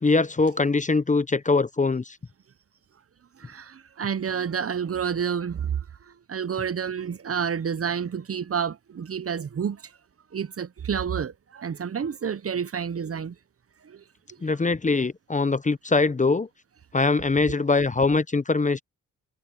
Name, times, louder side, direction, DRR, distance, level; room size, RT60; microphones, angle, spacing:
voice 1, 0.0-2.2 14.4-16.5 16.9-18.8, left 3 dB, 20° left, 0.7 m, -22 dB
voice 2, 3.4-5.7 6.3-9.8 10.3-13.3, right 7 dB, 40° right, 0.8 m, -29 dB
cardioid pair, 60°, 35 cm